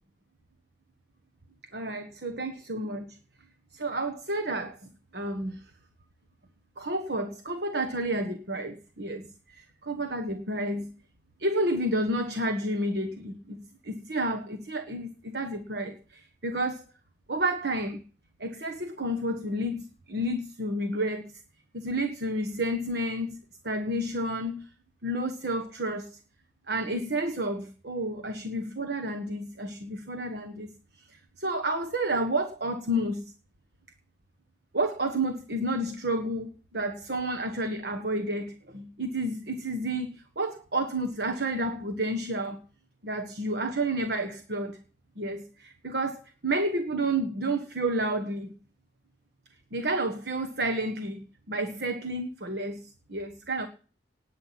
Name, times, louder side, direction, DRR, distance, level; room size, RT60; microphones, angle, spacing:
voice 1, 1.7-3.2 3.7-5.7 6.8-10.9 11.4-16.8 17.3-18.0 18.4-21.3 21.7-23.4 23.6-24.7 25.0-26.2 26.7-33.2 34.7-42.6 43.0-44.8 45.2-48.5 49.7-53.7, right 1 dB, 60° right, 1.5 m, -31 dB
19.0 x 8.9 x 5.9 m
head